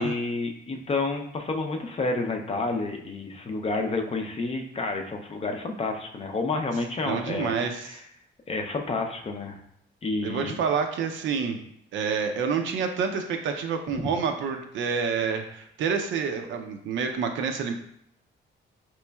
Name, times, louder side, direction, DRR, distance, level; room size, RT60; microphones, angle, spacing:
voice 1, 0.0-7.6 7.9-8.0 8.5-9.6 10.0-10.5, left 3 dB, 30° left, 3 dB, 0.5 m, -29 dB
voice 2, 7.0-8.0 10.2-11.6 11.9-17.7, right 6 dB, 75° right, 5 dB, 0.5 m, -28 dB
4.0 x 3.0 x 2.2 m, 0.70 s
cardioid pair, 90°, 20 cm